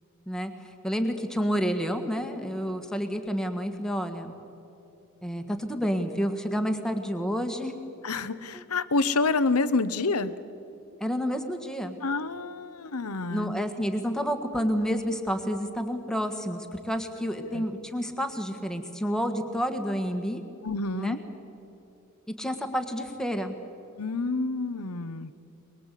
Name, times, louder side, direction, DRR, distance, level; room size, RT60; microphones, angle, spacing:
voice 1, 0.3-4.3 5.2-7.7 11.0-12.0 13.3-20.4 20.9-21.2 22.4-23.5, equal, 5° left, 5 dB, 1.7 m, -29 dB
voice 2, 8.0-10.3 12.0-13.5 17.4-17.6 20.6-21.2 24.0-25.3, left 3 dB, 80° left, 14 dB, 1.0 m, -28 dB
23.0 x 22.5 x 8.4 m, 2.9 s
head